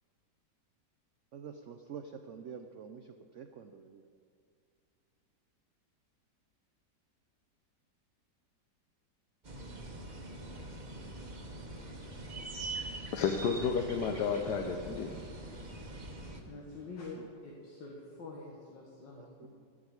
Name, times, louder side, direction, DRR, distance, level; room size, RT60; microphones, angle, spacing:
voice 1, 1.3-4.1 17.1-17.3 19.1-19.5, right 7 dB, 70° right, 7 dB, 0.7 m, -47 dB
sound 1, 9.4-16.4, right 2 dB, 30° right, 1.1 m, -43 dB
voice 2, 13.1-15.1, left 6 dB, 70° left, 3 dB, 1.3 m, -31 dB
voice 3, 16.4-17.2 17.4-19.5, left 3 dB, 85° left, -3 dB, 2.3 m, -46 dB
15.0 x 6.3 x 8.2 m, 2.4 s
omnidirectional pair, 1.9 m